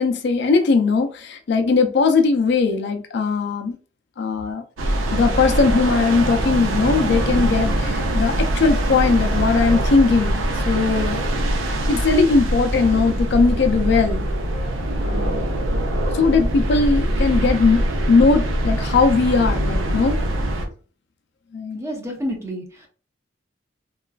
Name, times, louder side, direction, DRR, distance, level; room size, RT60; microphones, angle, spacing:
voice 1, 0.0-3.8 4.2-4.6 5.1-11.2 11.9-14.3 14.9-15.4 16.1-20.2 21.5-21.8, left 4 dB, 60° left, 0.4 m, -19 dB
sound 1, 4.8-20.7, right 1 dB, 90° right, 0.6 m, -23 dB
voice 2, 21.7-22.9, equal, 15° right, 0.7 m, -29 dB
3.0 x 2.3 x 2.3 m
head